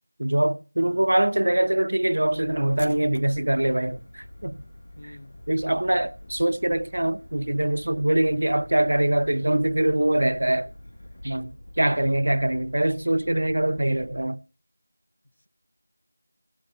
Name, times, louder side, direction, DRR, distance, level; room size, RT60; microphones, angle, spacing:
voice 1, 0.2-4.6 5.5-10.7 11.2-14.4, right 1 dB, 60° right, 0.5 m, -23 dB
voice 2, 0.8-1.1 5.0-5.4 11.9-12.2 13.8-14.1, left 1 dB, 70° left, 1.2 m, -47 dB
sound 1, 2.3-14.3, left 1 dB, 45° left, 1.4 m, -47 dB
sound 2, 2.7-11.4, left 1 dB, 20° left, 2.7 m, -55 dB
18.5 x 7.1 x 4.4 m
figure-of-eight pair, 180°, 0 cm